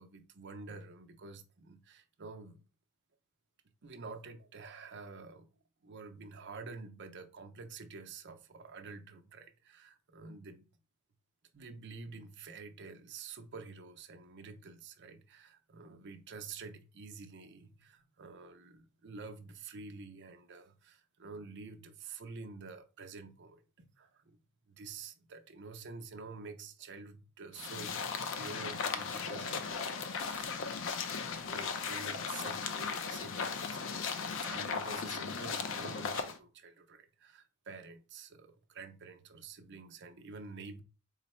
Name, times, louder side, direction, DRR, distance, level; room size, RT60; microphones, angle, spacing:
voice 1, 0.0-2.6 3.8-5.5 5.8-10.7 11.5-24.4 24.7-28.0 28.3-30.8 31.4-40.8, right 4 dB, 55° right, 0.6 m, -49 dB
sound 1, 27.6-36.4, left 5 dB, 65° left, 0.5 m, -37 dB
4.0 x 2.1 x 4.2 m
head